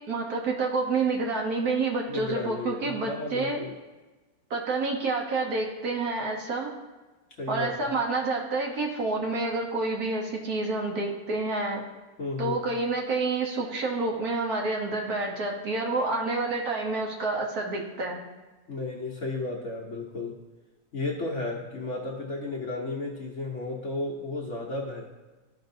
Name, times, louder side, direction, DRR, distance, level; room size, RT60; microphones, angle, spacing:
voice 1, 0.1-3.6 4.5-6.7 7.5-11.8 12.4-18.2, right 3 dB, 60° right, 0 dB, 1.5 m, -28 dB
voice 2, 2.1-3.7 7.4-7.7 12.2-12.7 18.7-20.4 20.9-25.1, left 2 dB, 50° left, -2 dB, 1.0 m, -33 dB
13.5 x 5.3 x 2.7 m, 1.2 s
omnidirectional pair, 2.0 m